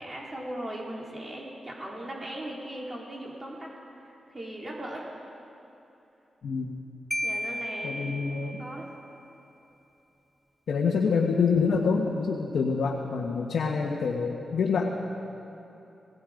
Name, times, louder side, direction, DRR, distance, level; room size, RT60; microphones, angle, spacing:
voice 1, 0.0-3.7 4.0-5.1 7.2-8.1 8.6-8.9, right 1 dB, 20° right, -3 dB, 4.3 m, -38 dB
voice 2, 6.4-6.7 7.8-8.6 10.7-14.9, left 5 dB, 75° left, -1 dB, 1.7 m, -26 dB
Marimba xylophone, 7.1-8.8, equal, 5° left, 0.7 m, -33 dB
28.0 x 19.5 x 5.3 m, 3.0 s
wide cardioid pair, 125°, 0 cm